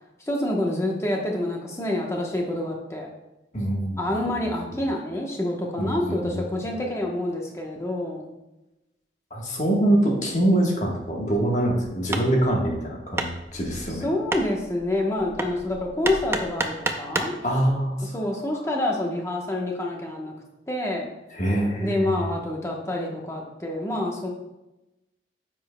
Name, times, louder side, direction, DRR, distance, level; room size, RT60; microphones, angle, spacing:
voice 1, 0.2-3.1 4.0-8.3 13.9-17.4 18.0-20.3 20.7-21.1 21.8-24.3, left 1 dB, 15° left, -1 dB, 1.0 m, -27 dB
voice 2, 3.5-4.3 4.7-4.8 5.8-6.7 9.3-14.1 17.4-18.1 21.3-22.3, right 1 dB, 40° left, -1 dB, 1.3 m, -24 dB
Hammer, 11.4-17.4, right 2 dB, 15° right, 0.4 m, -32 dB
9.3 x 6.2 x 2.2 m, 0.97 s
head